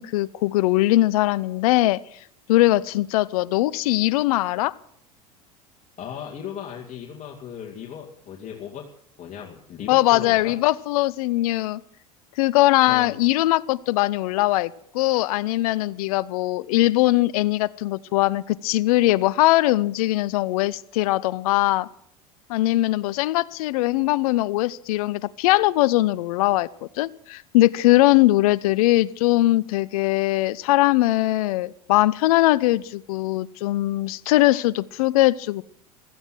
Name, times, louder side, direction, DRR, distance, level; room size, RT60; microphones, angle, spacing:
voice 1, 0.0-2.0 2.5-4.7 9.9-11.8 12.4-21.9 22.5-26.7 27.0-35.6, left 17 dB, 70° left, 19 dB, 0.7 m, -21 dB
voice 2, 6.0-8.9 9.2-10.5 12.9-13.2, left 8 dB, 40° left, -1 dB, 2.5 m, -36 dB
16.0 x 14.0 x 6.2 m, 0.64 s
hypercardioid pair, 80°, 20 cm